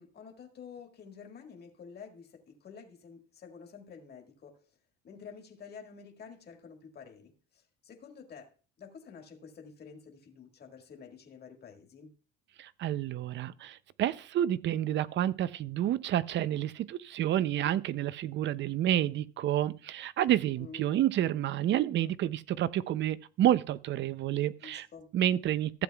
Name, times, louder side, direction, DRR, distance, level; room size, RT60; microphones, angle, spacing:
voice 1, 0.0-4.6 5.0-8.5 8.8-12.1 20.6-20.9 24.6-25.1, left 6 dB, 35° left, 1.8 m, -50 dB
voice 2, 12.6-24.9 25.1-25.8, right 12 dB, 40° right, 0.5 m, -29 dB
15.5 x 7.8 x 2.3 m
cardioid pair, 130°, 30 cm